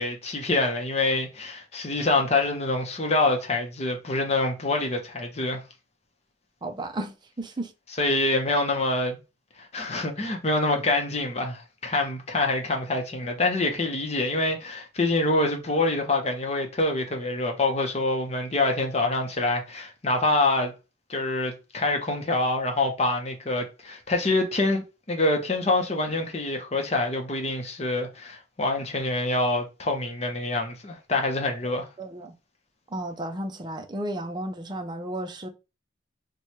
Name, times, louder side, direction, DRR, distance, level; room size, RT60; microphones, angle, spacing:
voice 1, 0.0-5.6 8.0-9.2 9.6-20.7 21.1-31.9, left 2 dB, 35° left, 0.7 m, -26 dB
voice 2, 6.6-7.7 31.6-32.3 32.9-35.5, right 1 dB, 25° right, 0.5 m, -34 dB
3.1 x 2.3 x 4.3 m
head